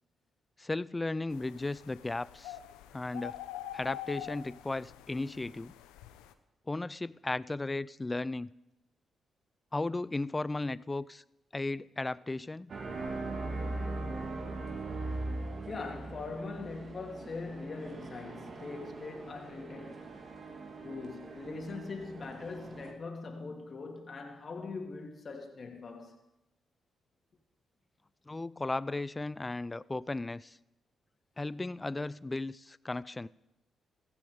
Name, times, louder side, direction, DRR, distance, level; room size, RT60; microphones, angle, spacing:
voice 1, 0.6-2.6 2.9-3.4 3.7-5.7 6.7-8.5 9.7-11.2 11.5-12.7 28.3-30.6 31.4-33.3, left 2 dB, 25° left, 0.5 m, -35 dB
sound 1, 1.3-6.3, left 12 dB, 90° left, 0.8 m, -46 dB
sound 2, 12.7-22.9, right 2 dB, 55° right, 2.7 m, -40 dB
voice 2, 15.7-20.1 20.8-26.2, left 3 dB, 50° left, 2.8 m, -41 dB
16.0 x 15.5 x 5.0 m
supercardioid pair, 50°, 0 cm